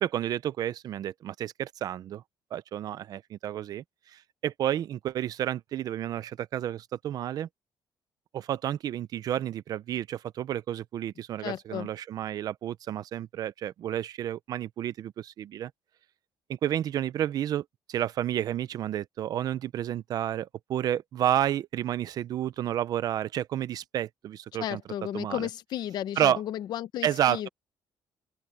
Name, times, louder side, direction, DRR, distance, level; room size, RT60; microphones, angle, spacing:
voice 1, 0.0-2.2 2.5-3.8 4.1-7.5 8.3-15.7 16.5-24.8 25.1-25.5 26.2-26.4 27.0-27.5, right 11 dB, 50° right, 0.6 m, -30 dB
voice 2, 11.4-11.9 24.6-27.5, left 11 dB, 55° left, 1.0 m, -34 dB
open air
cardioid pair, 165°, 8 cm